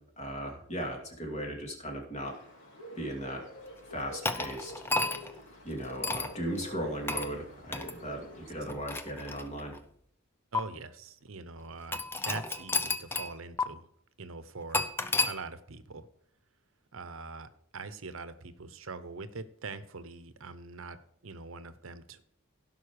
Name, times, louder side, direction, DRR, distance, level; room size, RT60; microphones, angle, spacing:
voice 1, 0.0-2.3 2.9-3.4 3.9-4.7 5.6-9.7, equal, 30° left, 1 dB, 2.6 m, -37 dB
Bird, 2.2-8.7, equal, 60° left, 4.4 m, -48 dB
sound 1, 4.2-5.4 6.0-6.3 7.1-7.3 7.7-7.9 8.6-9.8 10.5-10.6 11.9-13.3 13.6-13.7 14.7-15.3, left 3 dB, 10° left, 0.6 m, -31 dB
voice 2, 10.5-13.9 14.2-14.9 15.3-16.1 16.9-21.0 21.2-22.2, right 4 dB, 80° right, 13 dB, 0.9 m, -43 dB
16.5 x 5.6 x 4.8 m, 0.66 s
head